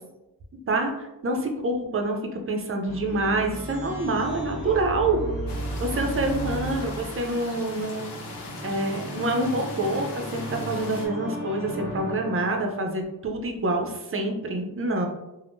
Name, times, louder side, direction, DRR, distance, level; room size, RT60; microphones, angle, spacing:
voice 1, 0.7-5.2 5.8-8.1 8.6-15.1, right 2 dB, 35° right, 3 dB, 0.5 m, -27 dB
sound 1, 2.8-12.9, right 1 dB, 50° left, 1.2 m, -35 dB
sound 2, 5.5-11.1, left 3 dB, 85° left, 0.7 m, -40 dB
3.4 x 2.0 x 2.6 m, 0.97 s
cardioid pair, 90°, 41 cm